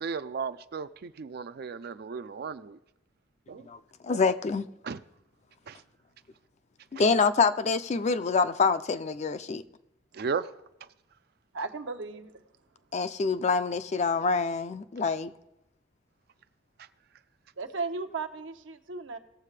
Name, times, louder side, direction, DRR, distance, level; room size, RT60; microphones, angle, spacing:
voice 1, 0.0-2.8 3.5-3.7 4.1-4.2 4.8-5.0 5.7-5.8 6.9-7.1 10.1-10.5, right 5 dB, 55° right, 0.4 m, -35 dB
voice 2, 3.7-4.7 6.9-9.6 12.9-15.3, left 4 dB, 35° left, 0.4 m, -26 dB
voice 3, 11.5-12.3 17.6-19.2, right 4 dB, 80° right, 0.8 m, -35 dB
18.5 x 7.4 x 3.3 m
head